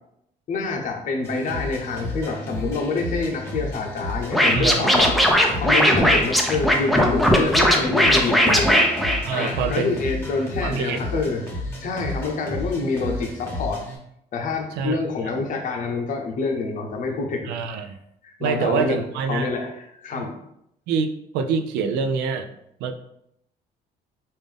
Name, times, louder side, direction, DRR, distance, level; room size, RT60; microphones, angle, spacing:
voice 1, 0.5-5.1 5.3-8.8 9.3-11.5 11.8-13.8 14.3-17.9 18.2-19.0 19.3-20.4, left 4 dB, 50° left, 2 dB, 0.7 m, -27 dB
sound 1, 1.2-14.0, left 1 dB, 15° left, 1.4 m, -32 dB
Scratching (performance technique), 4.3-9.8, equal, ahead, 0.5 m, -18 dB
voice 2, 4.5-4.9 8.5-8.6 9.2-10.0 10.6-11.0 14.8-15.0 15.3-15.4 17.5-18.0 18.4-19.5 20.1-20.2 20.9-22.5 22.8-22.9, right 5 dB, 90° right, 7 dB, 0.4 m, -25 dB
3.5 x 2.6 x 3.5 m, 0.78 s
cardioid pair, 110°, 17 cm